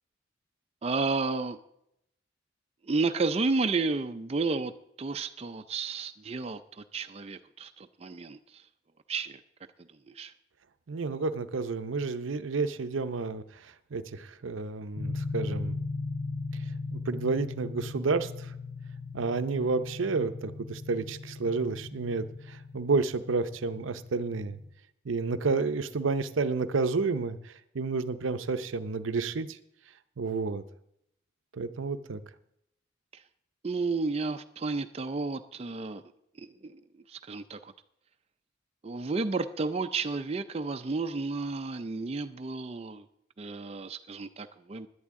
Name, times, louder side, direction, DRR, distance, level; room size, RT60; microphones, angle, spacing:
voice 1, 0.8-1.6 2.9-4.7 5.0-8.6 9.1-9.4 10.1-10.3 33.6-36.0 36.4-36.8 37.1-37.7 38.8-43.0 43.4-44.9, right 3 dB, 30° right, 8 dB, 0.4 m, -32 dB
voice 2, 10.9-15.8 16.9-18.5 19.1-24.6 25.1-29.6 30.2-30.6 31.5-32.2, right 4 dB, 85° right, 11 dB, 0.6 m, -30 dB
sound 1, 14.9-24.7, left 3 dB, 65° left, 3.4 m, -38 dB
17.0 x 11.0 x 3.6 m, 0.79 s
head